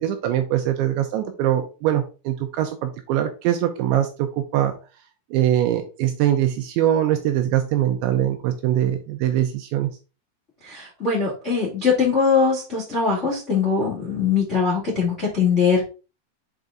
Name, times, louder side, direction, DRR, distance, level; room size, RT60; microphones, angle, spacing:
voice 1, 0.0-4.7 5.3-9.9, right 11 dB, 80° right, 2.7 m, -22 dB
voice 2, 10.6-15.9, left 5 dB, 80° left, 0.6 m, -21 dB
8.0 x 4.0 x 3.7 m
omnidirectional pair, 5.8 m